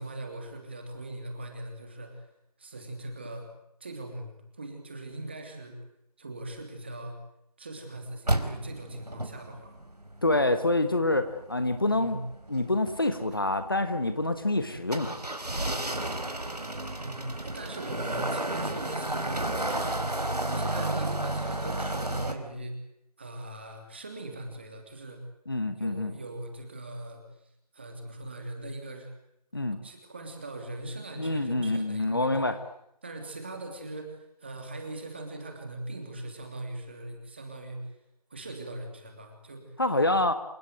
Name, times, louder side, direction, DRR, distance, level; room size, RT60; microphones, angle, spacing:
voice 1, 0.0-2.3 2.6-3.5 3.8-5.8 6.2-7.2 7.6-9.8 10.8-10.9 11.8-12.2 17.0-20.1 20.5-22.8 23.2-25.2 25.8-27.2 27.7-29.1 29.8-32.3 33.0-37.9 38.3-39.8, right 1 dB, 15° right, 4 dB, 3.0 m, -40 dB
sound 1, 8.3-22.3, right 1 dB, 80° right, 4.7 m, -32 dB
voice 2, 10.2-12.2 12.5-15.2 25.5-26.1 29.5-29.8 31.2-32.6 39.8-40.3, left 2 dB, 35° left, 10 dB, 1.4 m, -26 dB
28.0 x 17.5 x 9.3 m, 0.78 s
figure-of-eight pair, 175°, 20 cm